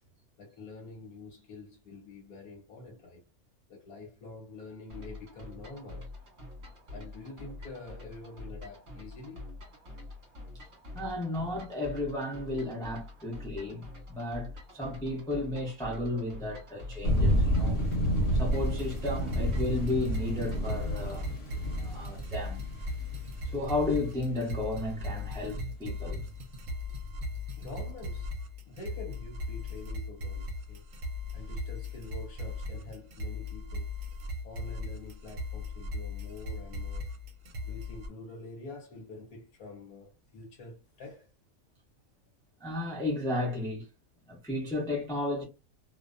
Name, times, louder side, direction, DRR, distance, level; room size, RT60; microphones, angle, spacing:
voice 1, 0.4-3.2 3.7-6.1 6.9-9.5 19.3-19.4 27.6-28.4 28.7-30.9 31.3-33.9 34.4-37.1 37.6-41.3, left 3 dB, 70° left, 1.3 m, -46 dB
sound 1, 4.9-20.8, left 2 dB, 35° right, 1.2 m, -46 dB
voice 2, 10.9-17.9 18.3-21.3 21.8-22.6 23.5-26.2 42.6-43.9 44.3-45.4, left 2 dB, 5° left, 0.4 m, -33 dB
sound 2, 17.0-25.3, equal, 50° left, 1.0 m, -30 dB
sound 3, 18.5-38.1, left 2 dB, 65° right, 1.0 m, -38 dB
2.6 x 2.1 x 2.5 m
omnidirectional pair, 1.6 m